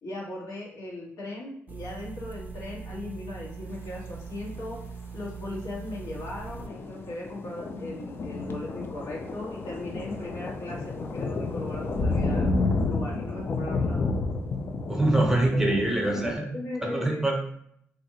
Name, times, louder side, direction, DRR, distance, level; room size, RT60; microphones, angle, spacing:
voice 1, 0.0-4.8 5.1-12.5 12.8-14.1 15.5-16.0 16.5-17.3, left 1 dB, 75° left, -4 dB, 1.1 m, -38 dB
sound 1, 1.7-6.7, right 5 dB, 30° right, 0.4 m, -41 dB
sound 2, 6.5-16.3, left 3 dB, 40° left, 0.4 m, -30 dB
voice 2, 14.9-16.5 16.8-17.6, right 1 dB, 10° right, 0 dB, 0.8 m, -24 dB
2.7 x 2.4 x 2.7 m, 0.69 s
supercardioid pair, 65°, 6 cm